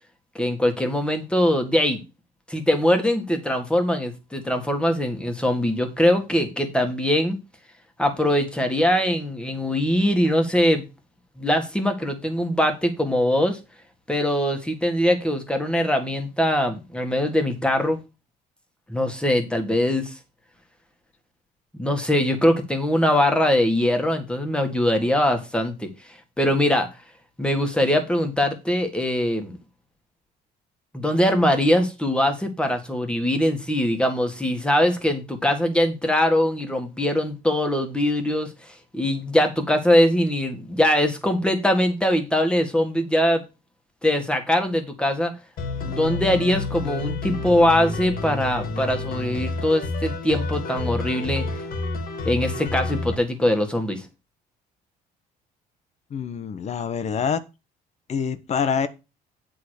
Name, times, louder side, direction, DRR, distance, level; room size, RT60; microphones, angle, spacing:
voice 1, 0.3-2.0 2.5-7.4 8.0-10.9 11.4-13.6 14.1-18.0 18.9-20.1 21.8-25.9 26.4-26.9 27.4-29.6 30.9-38.5 38.9-43.4 44.0-45.3 45.9-51.5 52.2-54.0, left 1 dB, 5° left, 1.7 m, -22 dB
sound 1, 45.6-53.1, left 3 dB, 60° left, 1.7 m, -29 dB
voice 2, 56.1-57.4 58.1-58.9, left 6 dB, 40° left, 0.9 m, -25 dB
8.3 x 3.8 x 6.5 m
cardioid pair, 110°, 17 cm